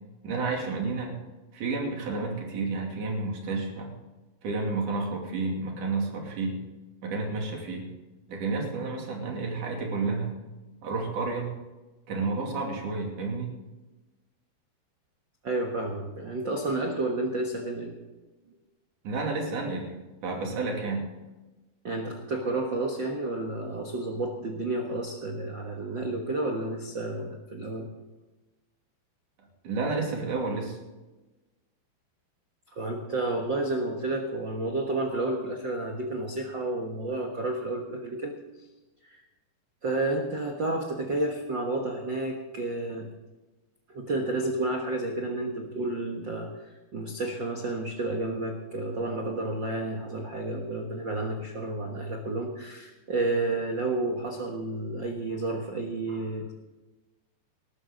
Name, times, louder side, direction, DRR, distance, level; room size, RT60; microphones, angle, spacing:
voice 1, 0.2-1.1 1.5-3.9 4.4-6.6 7.0-7.9 8.3-10.3 10.8-11.5 12.1-13.5 19.0-19.9 20.2-21.1 29.6-30.8, right 3 dB, 55° right, 0 dB, 4.0 m, -30 dB
voice 2, 15.4-18.0 21.8-27.9 32.7-38.3 39.0-39.2 39.8-43.1 43.9-56.5, right 2 dB, 85° right, 2 dB, 1.0 m, -31 dB
19.5 x 12.5 x 3.9 m, 1.1 s
omnidirectional pair, 4.5 m